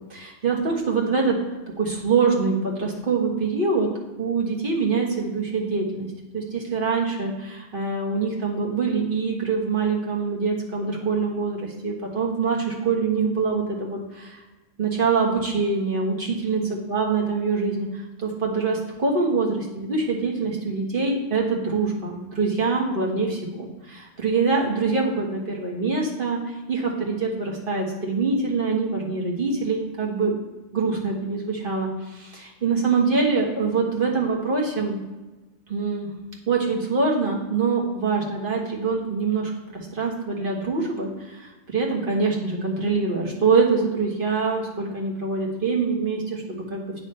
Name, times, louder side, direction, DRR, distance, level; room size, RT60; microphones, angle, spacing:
voice 1, 0.1-1.4 1.8-3.9 4.2-6.1 6.3-14.4 14.8-16.6 16.9-30.3 30.7-35.0 35.7-36.1 36.5-47.0, right 4 dB, 45° right, -2 dB, 1.5 m, -24 dB
9.1 x 3.3 x 5.5 m, 1.1 s
omnidirectional pair, 1.3 m